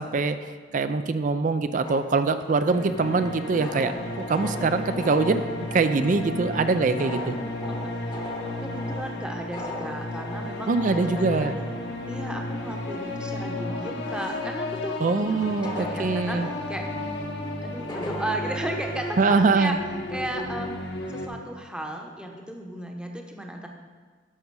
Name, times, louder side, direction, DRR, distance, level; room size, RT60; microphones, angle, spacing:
voice 1, 0.0-3.9 4.3-5.4 5.7-7.3 10.7-11.6 15.0-16.5 19.2-19.8, right 4 dB, 40° right, 10 dB, 0.4 m, -23 dB
sound 1, 1.8-19.4, left 1 dB, 25° left, 0.9 m, -41 dB
sound 2, 2.7-21.3, left 2 dB, 60° left, 1.0 m, -33 dB
voice 2, 7.3-8.2 8.6-11.6 12.1-16.9 17.6-19.8 20.1-20.8 21.1-23.7, right 1 dB, 5° right, 2 dB, 0.8 m, -35 dB
12.0 x 6.0 x 4.7 m, 1.5 s
head